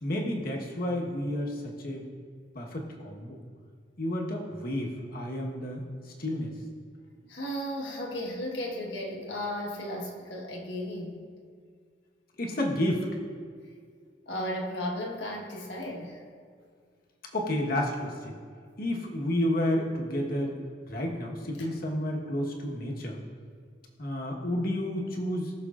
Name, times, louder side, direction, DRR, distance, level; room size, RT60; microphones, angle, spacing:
voice 1, 0.0-2.0 2.5-3.4 4.0-5.8 6.2-6.5 12.4-13.1 17.3-18.4 18.8-20.6 20.9-23.2 24.0-25.5, left 1 dB, 55° left, 0 dB, 1.3 m, -30 dB
voice 2, 7.2-11.2 14.3-16.2 21.6-21.7, equal, 75° left, -1 dB, 1.4 m, -35 dB
18.5 x 6.4 x 2.5 m, 2.1 s
head